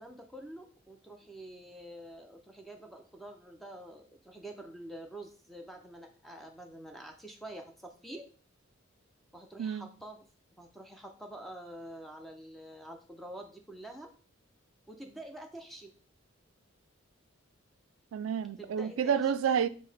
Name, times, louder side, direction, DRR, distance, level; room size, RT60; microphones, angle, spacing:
voice 1, 0.0-8.3 9.3-10.3 10.6-14.1 14.9-15.9 18.6-19.3, right 1 dB, ahead, 0.4 m, -47 dB
voice 2, 9.6-9.9 18.1-19.7, right 7 dB, 70° right, 0.3 m, -29 dB
5.5 x 2.1 x 3.3 m
head